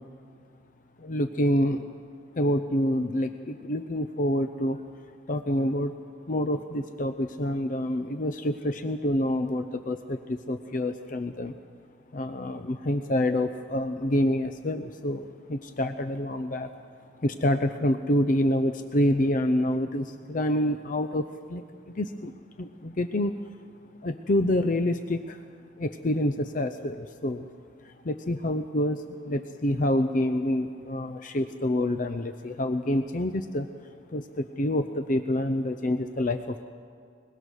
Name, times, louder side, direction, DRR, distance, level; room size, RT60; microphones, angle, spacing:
voice 1, 1.0-1.8 2.4-4.8 5.3-5.9 6.3-11.6 12.1-16.7 17.2-21.6 22.0-23.3 24.0-25.4 25.8-27.5 27.8-33.7 34.1-36.6, left 1 dB, 45° left, 9 dB, 0.6 m, -27 dB
22.5 x 21.0 x 6.4 m, 2.2 s
head